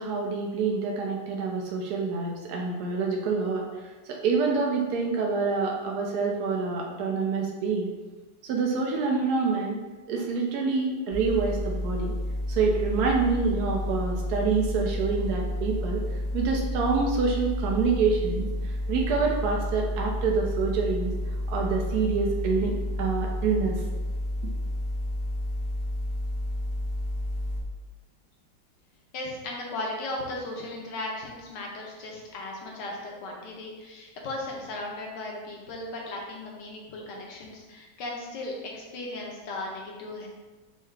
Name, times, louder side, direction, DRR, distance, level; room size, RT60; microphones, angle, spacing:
voice 1, 0.0-7.9 8.4-9.8 10.1-12.1 12.5-16.0 16.3-21.1 21.5-22.7 23.0-23.8, right 4 dB, 70° right, 0 dB, 0.9 m, -27 dB
sound 1, 11.1-27.6, left 1 dB, 30° left, 0.4 m, -30 dB
voice 2, 29.1-40.3, left 2 dB, 70° left, -1 dB, 1.4 m, -36 dB
4.6 x 2.8 x 3.2 m, 1.2 s
omnidirectional pair, 2.1 m